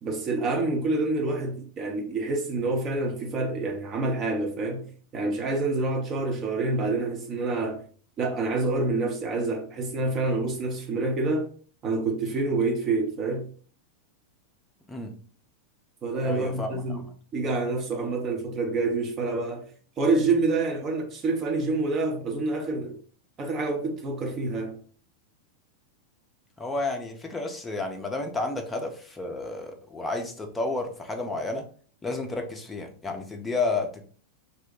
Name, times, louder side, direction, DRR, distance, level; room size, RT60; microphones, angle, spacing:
voice 1, 0.0-4.9 5.1-7.8 8.2-11.5 11.8-13.5 16.0-17.0 17.3-19.7 20.0-23.0 23.4-24.7, right 3 dB, 30° right, 0.6 m, -27 dB
voice 2, 16.2-17.0 26.6-31.7 32.0-34.0, left 3 dB, 10° left, 0.5 m, -31 dB
2.6 x 2.1 x 3.7 m
figure-of-eight pair, 90°, 0 cm